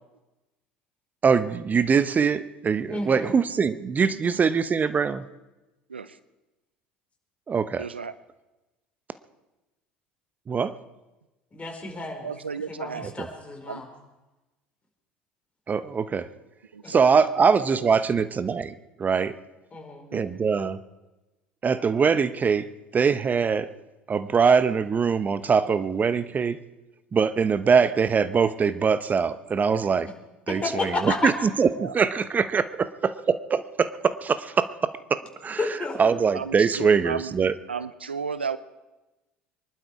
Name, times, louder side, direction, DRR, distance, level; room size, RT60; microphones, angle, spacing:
voice 1, 1.2-5.2 7.5-7.9 10.5-10.7 13.0-13.3 15.7-16.3 16.9-18.7 19.0-19.4 20.1-20.8 21.6-22.7 22.9-23.7 24.1-26.6 27.1-30.1 30.5-35.6 36.0-37.5, right 6 dB, 30° right, 13 dB, 0.9 m, -23 dB
voice 2, 2.9-3.3 11.5-12.3 12.7-13.9 16.8-16.9 19.7-20.1 30.5-31.3 35.6-36.1, left 3 dB, 25° left, 2 dB, 4.6 m, -31 dB
voice 3, 7.8-8.1 12.2-13.1 13.7-13.8 16.7-17.2 17.8-17.9 20.1-20.4 31.8-31.9 36.3-37.3 37.7-38.6, right 5 dB, 90° right, 15 dB, 0.6 m, -34 dB
24.0 x 12.0 x 4.9 m, 1.1 s
figure-of-eight pair, 65°, 6 cm